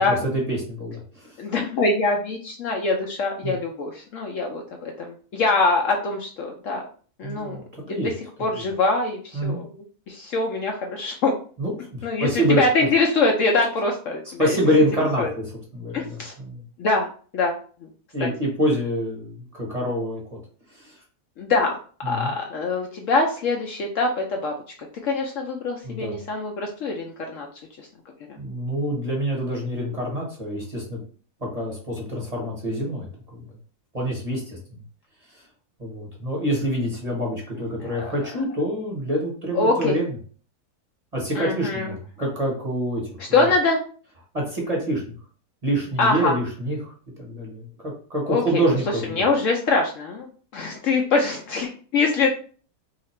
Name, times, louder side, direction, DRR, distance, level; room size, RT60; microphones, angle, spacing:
voice 1, 0.0-1.3 3.4-3.5 7.2-8.1 9.3-9.6 11.6-12.6 14.4-15.4 15.7-16.6 18.1-20.4 20.7-21.0 22.0-22.3 25.8-26.2 28.4-31.0 31.5-33.1 33.4-33.5 33.9-34.8 35.3-35.4 35.8-40.1 41.1-43.5 44.3-45.1 45.6-49.2, equal, 30° right, -3 dB, 1.0 m, -26 dB
voice 2, 1.4-6.8 7.2-7.6 7.9-8.1 8.4-9.7 10.1-11.3 12.0-14.6 15.2-15.3 15.9-16.3 16.8-17.1 17.3-17.6 18.2-18.3 21.4-21.8 22.1-24.5 25.0-27.5 27.8-27.9 37.8-38.1 39.5-40.0 41.3-41.9 43.3-43.8 46.0-46.4 48.3-48.6 49.1-50.3 50.5-52.4, left 3 dB, 65° left, 1 dB, 0.8 m, -23 dB
2.8 x 2.4 x 4.2 m, 0.42 s
omnidirectional pair, 1.6 m